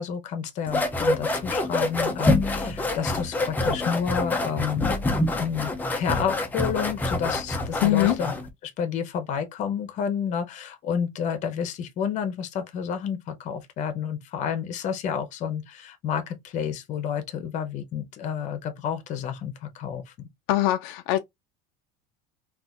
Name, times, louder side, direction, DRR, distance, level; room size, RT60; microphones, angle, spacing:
voice 1, 0.0-5.0 5.3-8.3 8.6-20.3, left 7 dB, 40° left, 0.7 m, -30 dB
sound 1, 0.7-8.5, left 2 dB, 10° left, 0.4 m, -26 dB
voice 2, 7.8-8.2 20.5-21.2, left 15 dB, 75° left, 0.4 m, -22 dB
3.9 x 2.5 x 2.4 m
cardioid pair, 160°, 20 cm